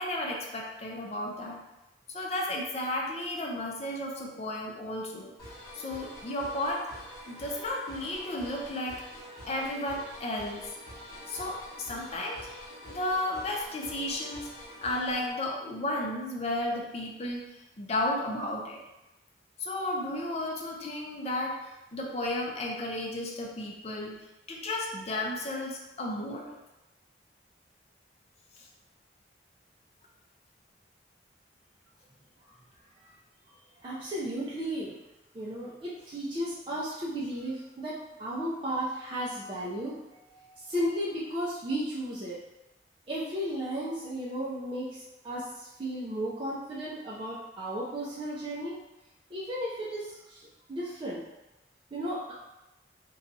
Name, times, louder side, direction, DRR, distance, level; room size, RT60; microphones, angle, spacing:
voice 1, 0.0-1.6 2.1-5.3 5.7-6.9 7.3-9.0 9.5-10.6 11.3-12.5 12.8-14.5 14.8-17.4 17.8-18.8 19.6-24.2 24.5-26.5, left 1 dB, 35° left, -1 dB, 0.5 m, -33 dB
sound 1, 5.4-15.3, left 1 dB, 20° left, 1.3 m, -46 dB
voice 2, 33.8-35.0 35.3-40.0 40.2-42.4 43.1-48.8 49.3-51.2 51.9-52.3, equal, 30° right, -7 dB, 0.5 m, -34 dB
2.8 x 2.3 x 3.8 m, 0.96 s
head